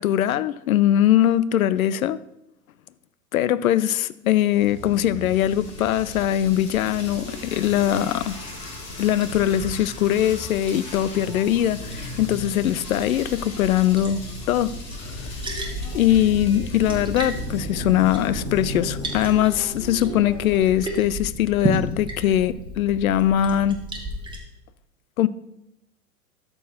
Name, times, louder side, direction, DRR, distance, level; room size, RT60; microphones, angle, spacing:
voice 1, 0.0-2.2 3.3-8.4 9.0-14.8 15.9-23.8 25.2-25.3, left 11 dB, 75° left, 0.6 m, -21 dB
sound 1, 4.5-20.7, left 1 dB, 35° left, 2.7 m, -37 dB
Liquid, 5.4-24.4, equal, 10° right, 1.4 m, -35 dB
Toilet flush, 7.0-14.0 14.3-14.4, left 1 dB, 20° left, 3.2 m, -45 dB
13.0 x 4.5 x 4.3 m
hypercardioid pair, 100°, 42 cm